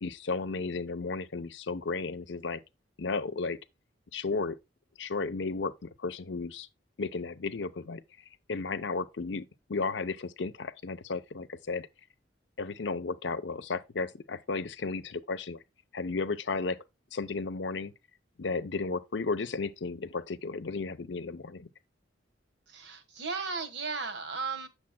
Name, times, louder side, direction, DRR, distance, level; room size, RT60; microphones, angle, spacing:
voice 1, 0.0-2.6 3.0-3.6 4.1-4.6 5.0-6.7 7.0-8.0 8.5-11.9 12.6-15.6 15.9-16.8 17.1-17.9 18.4-21.7, left 4 dB, 75° left, 0.7 m, -34 dB
voice 2, 22.7-24.7, right 4 dB, 65° right, 1.3 m, -35 dB
8.6 x 6.7 x 2.2 m
head